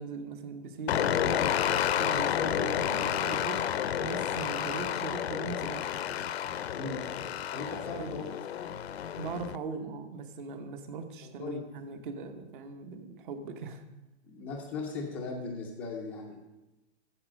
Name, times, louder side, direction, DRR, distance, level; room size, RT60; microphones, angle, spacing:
voice 1, 0.0-1.6 2.0-3.6 4.0-5.9 7.7-8.2 9.2-13.8, right 5 dB, 45° right, 8 dB, 1.1 m, -40 dB
sound 1, 0.9-9.6, left 10 dB, 65° left, 0.6 m, -30 dB
voice 2, 6.7-7.0 7.5-8.7 11.4-11.6 14.3-16.4, left 4 dB, 5° left, -1 dB, 0.4 m, -38 dB
8.7 x 7.2 x 6.2 m, 1.0 s
hypercardioid pair, 150°, 35 cm